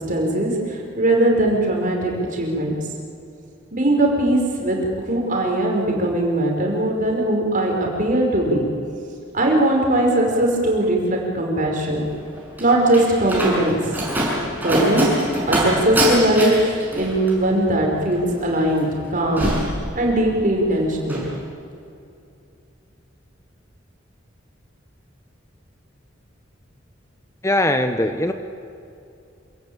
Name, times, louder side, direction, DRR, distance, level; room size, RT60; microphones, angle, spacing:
voice 1, 0.0-2.8 3.7-8.7 9.3-12.0 12.6-13.8 14.6-15.2 15.5-19.5 20.0-21.2, right 1 dB, 45° right, 0 dB, 5.3 m, -20 dB
Slam, 12.1-20.5 20.8-21.3, right 1 dB, 10° right, 6.4 m, -25 dB
voice 2, 27.4-28.3, left 1 dB, 15° left, 7 dB, 0.9 m, -20 dB
27.5 x 17.0 x 8.9 m, 2.6 s
head